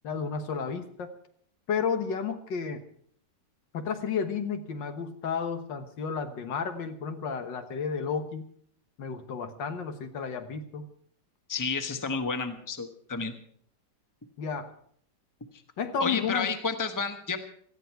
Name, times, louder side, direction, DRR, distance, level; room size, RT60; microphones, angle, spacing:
voice 1, 0.0-1.1 1.7-2.8 3.7-8.5 9.0-10.9 14.4-14.7 15.8-16.5, left 6 dB, 80° left, 7 dB, 2.0 m, -32 dB
voice 2, 11.5-13.3 16.0-17.4, left 5 dB, 15° left, 7 dB, 1.0 m, -31 dB
18.5 x 13.5 x 4.6 m, 0.63 s
omnidirectional pair, 1.9 m